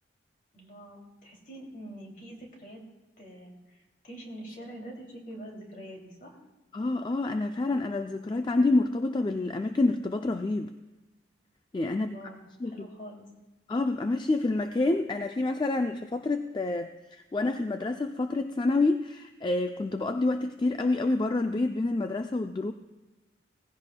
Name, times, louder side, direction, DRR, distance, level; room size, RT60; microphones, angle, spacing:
voice 1, 0.5-2.8 3.2-6.4 12.0-13.2, right 1 dB, 45° left, 0 dB, 2.6 m, -45 dB
voice 2, 6.7-10.7 11.7-12.1 12.6-12.8 13.7-22.7, left 2 dB, 25° left, 7 dB, 0.3 m, -28 dB
18.0 x 15.5 x 2.2 m, 1.1 s
head